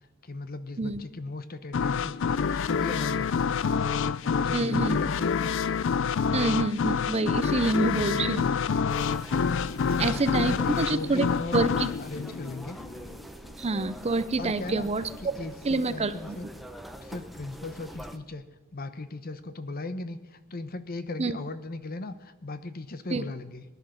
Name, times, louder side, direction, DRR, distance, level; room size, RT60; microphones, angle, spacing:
voice 1, 0.2-3.6 4.2-5.4 7.8-9.0 9.8-12.8 14.4-14.9 15.2-16.5 17.0-18.4 18.7-23.6, left 2 dB, 45° left, 12 dB, 0.9 m, -37 dB
sound 1, 1.7-13.2, left 6 dB, 60° left, 0.4 m, -27 dB
voice 2, 4.5-5.0 6.3-8.5 10.0-11.3 11.5-11.9 13.6-15.1 15.6-16.4 21.2-21.4 23.1-23.2, right 3 dB, 30° right, 13 dB, 0.6 m, -27 dB
sound 2, 8.9-18.2, equal, ahead, 0.8 m, -44 dB
20.0 x 10.5 x 6.4 m, 1.1 s
head